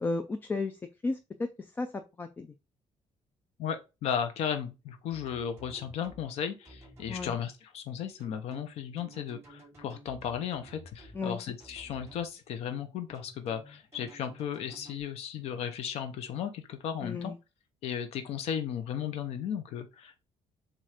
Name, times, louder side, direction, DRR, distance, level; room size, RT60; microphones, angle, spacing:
voice 1, 0.0-1.5 1.8-2.5 7.1-7.3 11.1-11.4 17.0-17.4, left 3 dB, 20° left, 0.4 m, -34 dB
voice 2, 3.6-17.3 17.8-20.2, left 8 dB, 65° left, 0.8 m, -35 dB
sound 1, 5.1-6.2 6.6-7.3 8.2-11.2 11.6-12.3 13.1-15.0, right 1 dB, 25° right, 2.7 m, -52 dB
7.5 x 2.6 x 5.0 m
cardioid pair, 175°, 11 cm